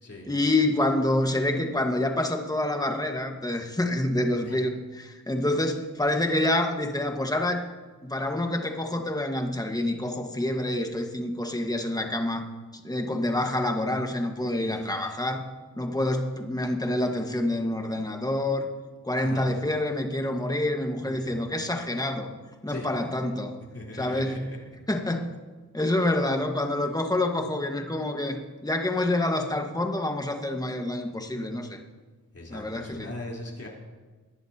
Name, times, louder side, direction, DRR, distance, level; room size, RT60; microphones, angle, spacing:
voice 1, 0.3-7.7 8.0-12.5 12.8-15.5 15.7-18.7 19.0-22.3 22.6-23.5 23.9-24.6 24.9-25.3 25.7-31.8 32.5-33.1, left 1 dB, 10° left, 4 dB, 1.6 m, -27 dB
voice 2, 14.5-15.1 19.2-19.5 21.0-21.5 22.7-22.9 23.7-24.6 32.3-33.7, left 2 dB, 45° left, -3 dB, 4.0 m, -40 dB
20.5 x 10.5 x 2.9 m, 1.3 s
cardioid pair, 50°, 33 cm